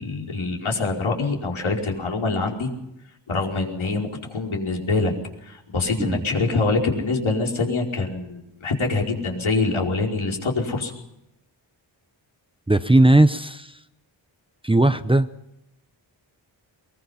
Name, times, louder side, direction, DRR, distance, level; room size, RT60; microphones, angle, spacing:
voice 1, 0.0-2.7 3.3-5.1 5.4-10.9, left 3 dB, 80° left, 0 dB, 5.1 m, -25 dB
voice 2, 12.7-13.8 14.6-15.3, right 1 dB, 10° right, 11 dB, 0.9 m, -17 dB
23.0 x 21.5 x 5.8 m, 0.84 s
wide cardioid pair, 95°, 47 cm